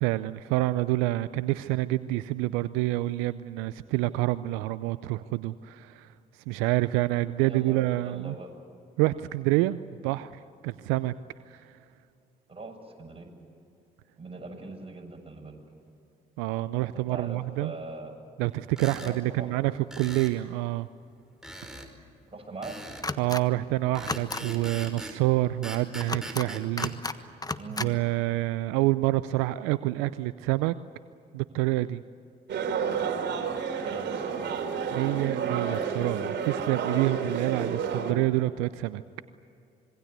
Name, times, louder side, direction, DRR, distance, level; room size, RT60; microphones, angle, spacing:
voice 1, 0.0-6.1 6.5-8.3 9.0-10.3 10.6-11.1 11.5-11.8 16.4-17.7 18.4-20.9 23.2-27.4 27.8-30.7 31.3-32.0 34.9-39.0, right 18 dB, 80° right, 15 dB, 0.5 m, -27 dB
voice 2, 7.5-8.5 10.1-10.2 12.5-13.3 14.2-15.6 16.9-18.1 18.9-19.7 22.3-22.8 27.6-27.9 33.8-34.8, right 2 dB, 30° right, 2 dB, 7.5 m, -41 dB
sound 1, 18.7-19.2 19.9-20.4 21.4-21.9 22.6-23.1 23.9-25.2 25.6-26.9, right 1 dB, 5° right, 4.8 m, -41 dB
sound 2, 23.0-23.4 24.0-24.4 26.0-26.5 26.8-27.2 27.4-27.9, left 2 dB, 20° left, 1.3 m, -32 dB
sound 3, 32.5-38.1, right 6 dB, 60° right, 3.2 m, -30 dB
26.0 x 22.5 x 8.2 m, 2.5 s
hypercardioid pair, 45°, 20 cm